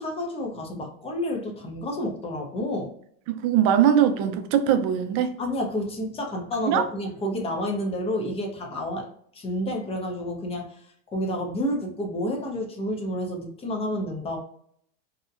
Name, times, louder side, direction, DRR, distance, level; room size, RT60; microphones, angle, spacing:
voice 1, 0.0-2.9 5.4-9.1 9.3-10.8 11.1-14.4, left 1 dB, 20° left, 0.6 m, -30 dB
voice 2, 3.3-5.4 6.6-6.8, right 9 dB, 50° right, 0.4 m, -21 dB
2.8 x 2.1 x 2.4 m
supercardioid pair, 140°, 32 cm